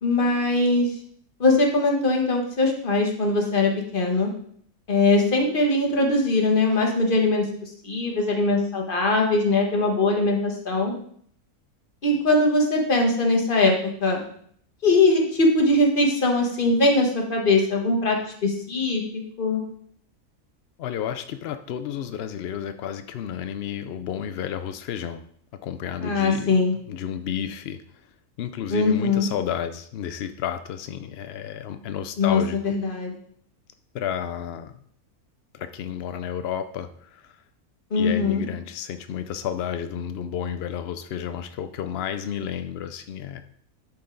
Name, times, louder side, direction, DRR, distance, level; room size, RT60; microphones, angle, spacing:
voice 1, 0.0-0.9 1.4-4.3 4.9-10.9 12.0-13.7 14.0-14.2 14.8-19.6 26.0-26.8 28.7-29.3 32.2-33.1 37.9-38.4, left 2 dB, 35° left, 1 dB, 1.4 m, -21 dB
voice 2, 20.8-25.2 25.5-26.5 26.9-28.1 28.4-32.8 33.9-34.8 35.5-37.4 38.0-43.4, left 9 dB, 80° left, 10 dB, 0.5 m, -31 dB
11.0 x 4.5 x 3.8 m, 0.63 s
omnidirectional pair, 1.6 m